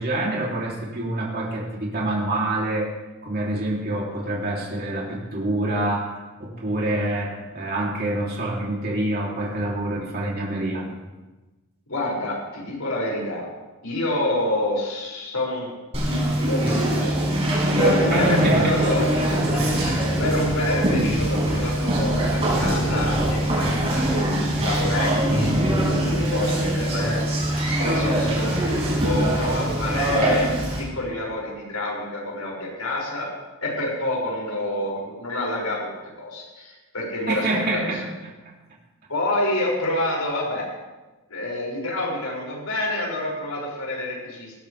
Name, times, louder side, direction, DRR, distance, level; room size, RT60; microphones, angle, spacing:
voice 1, 0.0-2.9 3.2-10.9 18.1-18.9 37.3-38.1, right 1 dB, 45° right, -3 dB, 3.3 m, -26 dB
voice 2, 11.9-13.5 13.8-15.7 16.0-17.2 17.8-19.1 19.3-30.5 30.8-33.3 33.6-35.9 36.2-37.8 39.1-40.7 41.3-44.5, left 1 dB, 85° left, -3 dB, 6.5 m, -28 dB
Conversation, 15.9-30.8, right 1 dB, 30° right, 6.0 m, -22 dB
19.0 x 17.0 x 3.5 m, 1.2 s
head